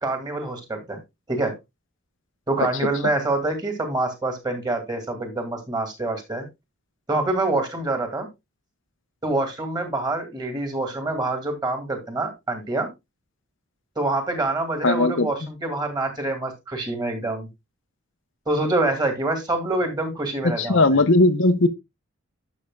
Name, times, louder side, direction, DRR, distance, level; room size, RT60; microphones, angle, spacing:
voice 1, 0.0-1.0 1.3-1.5 2.5-6.5 7.1-8.3 9.2-12.9 14.0-17.5 18.5-20.8, right 2 dB, 20° right, 2.2 m, -26 dB
voice 2, 14.8-15.3 20.6-21.7, left 2 dB, 55° left, 0.8 m, -18 dB
11.5 x 7.0 x 2.3 m
head